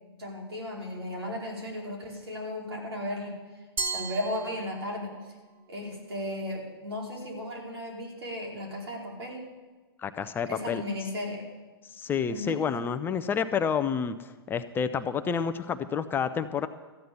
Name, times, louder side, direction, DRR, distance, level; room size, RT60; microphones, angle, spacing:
voice 1, 0.2-3.3 3.9-5.1 5.7-9.4 10.4-11.4 12.3-12.6, left 1 dB, 80° right, -1 dB, 4.5 m, -35 dB
Glass, 3.8-5.2, right 4 dB, 20° right, 1.8 m, -35 dB
voice 2, 10.0-10.8 11.9-16.7, left 6 dB, 15° left, 10 dB, 0.5 m, -29 dB
14.0 x 9.4 x 6.9 m, 1.3 s
hypercardioid pair, 120°, 13 cm